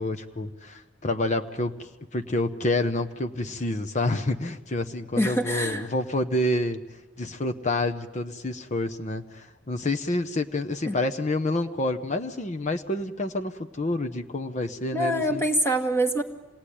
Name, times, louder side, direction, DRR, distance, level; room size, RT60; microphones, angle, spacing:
voice 1, 0.0-6.8 7.2-15.4, left 2 dB, 35° left, 7 dB, 0.9 m, -28 dB
voice 2, 5.1-5.9 10.9-11.0 14.9-16.2, right 1 dB, 10° left, 6 dB, 1.5 m, -25 dB
26.5 x 18.5 x 10.0 m, 1.2 s
head